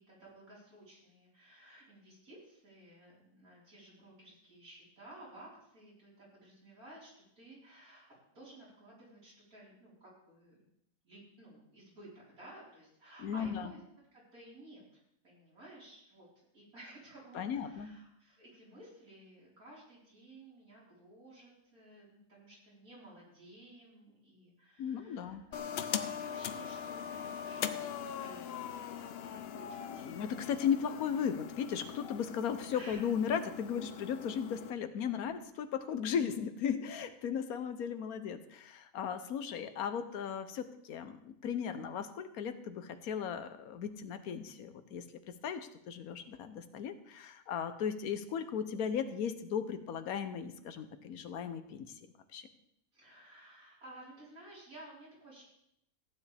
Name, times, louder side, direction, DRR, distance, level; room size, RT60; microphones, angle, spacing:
voice 1, 0.0-10.6 11.0-13.8 14.1-16.3 16.5-30.1 32.7-33.0 52.9-55.4, right 1 dB, 80° right, -6 dB, 4.9 m, -55 dB
voice 2, 13.2-13.7 17.3-17.9 24.8-25.5 29.9-52.1 52.3-52.5, left 7 dB, 85° left, 10 dB, 1.3 m, -36 dB
sound 1, 25.5-34.7, left 8 dB, 60° left, 0.7 m, -41 dB
15.0 x 9.6 x 3.4 m, 0.78 s
omnidirectional pair, 1.5 m